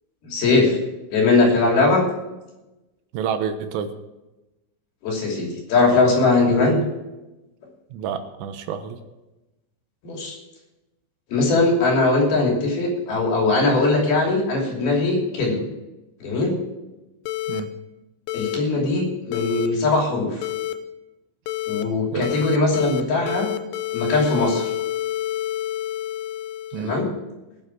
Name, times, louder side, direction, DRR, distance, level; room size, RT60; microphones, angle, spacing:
voice 1, 0.2-0.8 1.1-2.0 5.0-6.8 10.0-10.4 11.3-15.6 16.2-16.5 18.3-20.4 21.7-23.5 23.9-24.7 26.8-27.1, left 3 dB, 55° left, 0 dB, 4.6 m, -20 dB
voice 2, 3.1-3.9 7.9-9.0 17.5-17.7 22.1-22.3 26.7-27.0, right 7 dB, 85° right, 8 dB, 3.7 m, -28 dB
sound 1, 17.3-17.6 18.3-18.6 19.3-19.7 20.4-20.7 21.5-21.8 22.2-23.0 23.3-27.0, left 13 dB, 80° left, 3.0 m, -28 dB
21.0 x 7.7 x 4.7 m, 1.0 s
omnidirectional pair, 5.8 m